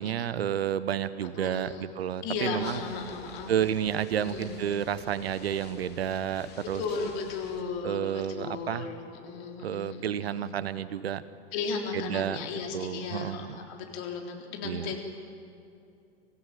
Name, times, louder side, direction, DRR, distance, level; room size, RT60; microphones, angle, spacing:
voice 1, 0.0-2.8 3.5-6.8 7.8-8.9 9.6-11.2 11.9-12.4 12.7-13.6 14.6-14.9, right 9 dB, 75° right, 15 dB, 1.0 m, -30 dB
voice 2, 1.4-1.8 2.2-3.5 4.1-4.7 6.3-6.4 6.7-10.5 11.5-15.0, left 5 dB, 50° left, 2 dB, 3.8 m, -35 dB
sound 1, 2.6-7.6, left 5 dB, 30° left, 3.0 m, -49 dB
25.0 x 15.5 x 9.2 m, 2.6 s
figure-of-eight pair, 95°, 31 cm